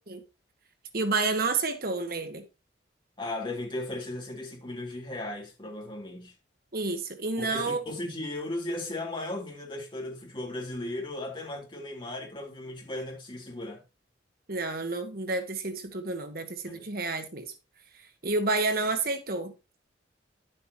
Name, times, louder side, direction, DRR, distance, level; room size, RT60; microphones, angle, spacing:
voice 1, 0.9-2.4 6.7-7.9 14.5-17.5 18.2-19.5, right 3 dB, 50° right, 1.6 m, -30 dB
voice 2, 3.2-6.3 7.4-13.8 16.7-16.9, left 1 dB, 25° left, 3.6 m, -36 dB
11.5 x 7.9 x 2.9 m
head